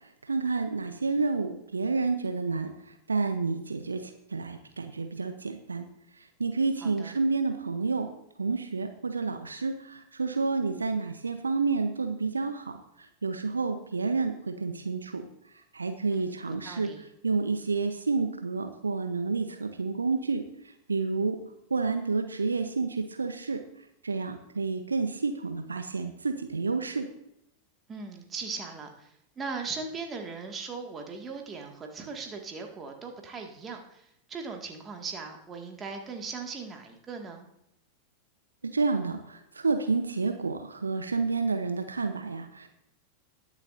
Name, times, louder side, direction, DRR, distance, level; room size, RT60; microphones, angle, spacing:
voice 1, 0.3-5.9 6.2-8.1 8.4-15.3 15.7-16.9 17.2-20.4 20.9-21.4 21.7-23.6 24.0-27.1 38.6-42.7, right 4 dB, 75° right, 7 dB, 0.8 m, -29 dB
voice 2, 6.8-7.2 16.1-17.0 27.9-37.5, right 4 dB, 20° right, 2 dB, 1.9 m, -39 dB
20.0 x 7.4 x 2.6 m, 0.79 s
figure-of-eight pair, 90°, 0 cm